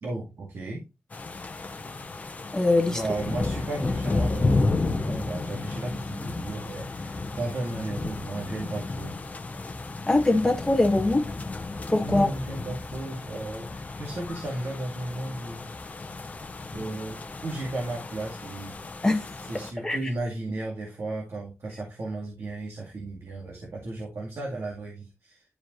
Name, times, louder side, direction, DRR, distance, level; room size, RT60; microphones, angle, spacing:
voice 1, 0.0-0.8 2.9-9.1 12.0-15.8 16.7-18.8 19.5-25.4, right 2 dB, 60° right, 2.1 m, -34 dB
sound 1, 1.1-19.7, left 3 dB, 30° left, 0.9 m, -32 dB
voice 2, 2.5-3.0 10.1-11.3 11.9-12.3 19.0-19.2 19.8-20.0, left 2 dB, 10° left, 1.6 m, -22 dB
12.0 x 5.0 x 3.1 m
wide cardioid pair, 165°, 5 cm